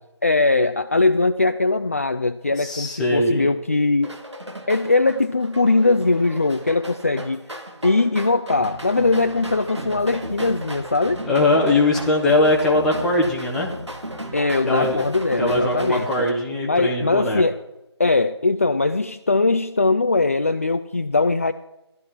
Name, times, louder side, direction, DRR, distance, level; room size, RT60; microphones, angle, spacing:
voice 1, 0.2-4.2 4.7-7.4 7.8-11.2 14.3-16.3 16.6-17.5 18.0-21.5, left 3 dB, 30° left, 9 dB, 0.4 m, -20 dB
voice 2, 2.6-3.5 11.2-13.7 14.7-15.0 15.4-17.4, left 2 dB, ahead, -3 dB, 0.7 m, -20 dB
sound 1, 4.0-16.3, right 1 dB, 75° right, 2.3 m, -35 dB
14.0 x 12.0 x 4.5 m, 0.94 s
figure-of-eight pair, 160°, 15 cm